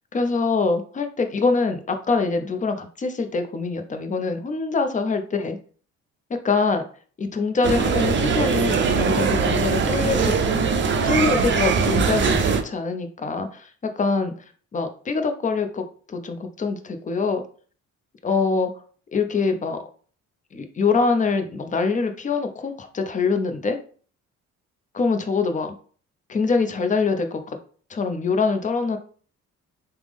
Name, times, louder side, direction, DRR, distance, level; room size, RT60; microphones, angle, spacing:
voice 1, 0.1-5.6 6.4-6.9 7.2-10.3 11.0-14.5 14.7-17.4 18.2-18.7 19.1-19.8 20.5-23.8 24.9-25.8 26.3-27.6 27.9-29.0, left 4 dB, 25° left, 7 dB, 0.5 m, -24 dB
sound 1, 7.6-12.6, right 5 dB, 40° right, 0.5 m, -21 dB
3.3 x 2.0 x 3.4 m, 0.43 s
cardioid pair, 90°, 30 cm